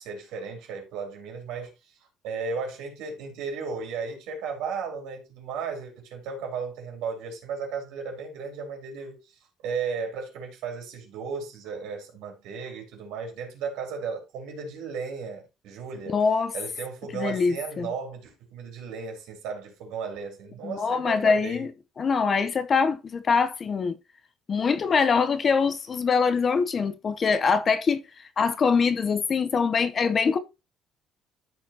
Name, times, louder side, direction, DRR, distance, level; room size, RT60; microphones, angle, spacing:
voice 1, 0.0-2.0 2.2-16.2 16.5-21.7, right 5 dB, 85° right, 3.8 m, -35 dB
voice 2, 16.1-16.5 17.1-17.9 20.6-21.7 22.0-24.0 24.5-28.0 28.4-30.4, left 5 dB, 30° left, 0.8 m, -23 dB
13.5 x 4.6 x 2.9 m
cardioid pair, 140°, 0 cm